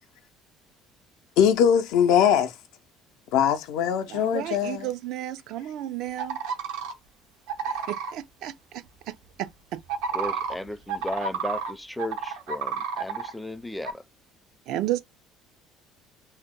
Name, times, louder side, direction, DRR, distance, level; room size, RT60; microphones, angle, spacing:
voice 1, 1.4-2.5 3.3-4.9, left 8 dB, 80° left, 0.5 m, -21 dB
voice 2, 4.1-6.4 7.9-9.8 14.7-15.0, right 13 dB, 70° right, 0.4 m, -33 dB
sound 1, 6.2-6.9 7.5-8.1 9.8-11.7 12.0-13.3 13.8-13.9, right 6 dB, 90° right, 0.8 m, -30 dB
voice 3, 10.1-14.0, left 1 dB, 5° left, 0.4 m, -35 dB
2.8 x 2.0 x 3.6 m
cardioid pair, 110°, 0 cm